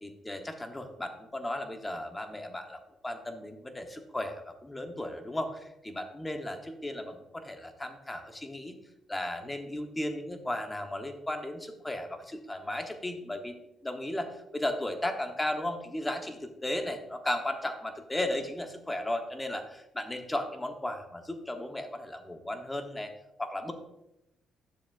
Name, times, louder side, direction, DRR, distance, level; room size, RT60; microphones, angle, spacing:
voice 1, 0.0-8.7 9.1-13.6 13.8-23.1 23.4-23.7, left 1 dB, 15° left, 5 dB, 1.1 m, -35 dB
10.5 x 7.0 x 2.6 m, 0.88 s
cardioid pair, 90°, 0 cm